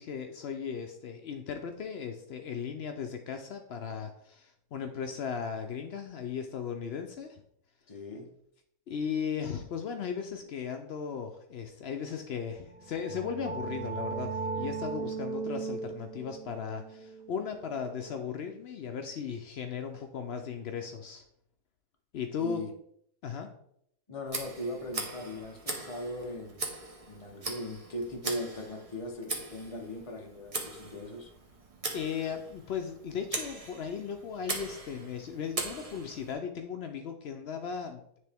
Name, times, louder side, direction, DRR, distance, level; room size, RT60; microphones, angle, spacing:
voice 1, 0.0-7.4 8.9-21.2 22.1-22.6 23.2-23.5 31.9-38.0, left 7 dB, 85° left, 5 dB, 0.5 m, -37 dB
voice 2, 7.9-8.3 22.3-22.7 24.1-26.6 27.1-31.3, left 1 dB, 30° left, 2 dB, 0.7 m, -39 dB
sound 1, 12.7-18.3, right 5 dB, 10° left, 1.6 m, -38 dB
Tick, 24.3-36.3, right 3 dB, 30° right, 0.7 m, -40 dB
9.4 x 3.4 x 3.4 m, 0.71 s
omnidirectional pair, 1.7 m